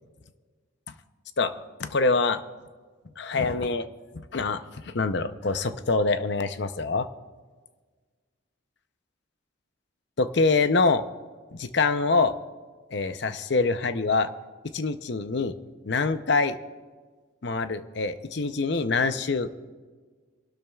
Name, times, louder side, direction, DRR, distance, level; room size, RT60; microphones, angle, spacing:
voice 1, 1.8-2.4 3.2-3.9 4.3-7.1 10.2-11.0 11.5-12.3 12.9-14.3 14.7-15.5 15.8-16.6 17.4-19.5, left 3 dB, 55° left, 10 dB, 0.7 m, -25 dB
28.5 x 12.5 x 2.4 m, 1.5 s
head